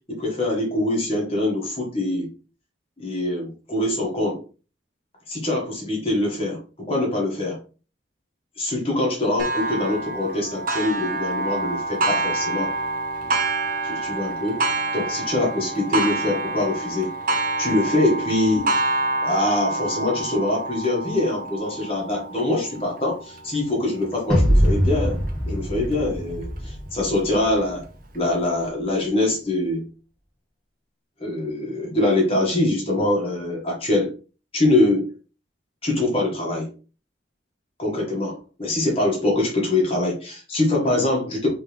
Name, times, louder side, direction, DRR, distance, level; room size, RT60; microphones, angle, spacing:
voice 1, 0.1-2.3 3.0-4.4 5.3-7.6 8.6-12.7 13.8-14.6 14.9-17.1 17.6-18.7 19.2-25.2 25.5-27.8 28.1-29.9 31.2-34.1 34.5-35.1 35.8-36.7 37.8-41.5, left 2 dB, 30° left, -2 dB, 1.5 m, -24 dB
Clock, 9.4-24.7 25.3-25.4 25.9-26.0 27.0-27.1, right 2 dB, 45° right, 0.7 m, -27 dB
sound 1, 24.3-27.6, equal, 5° left, 1.2 m, -22 dB
3.7 x 3.3 x 3.5 m, 0.37 s
head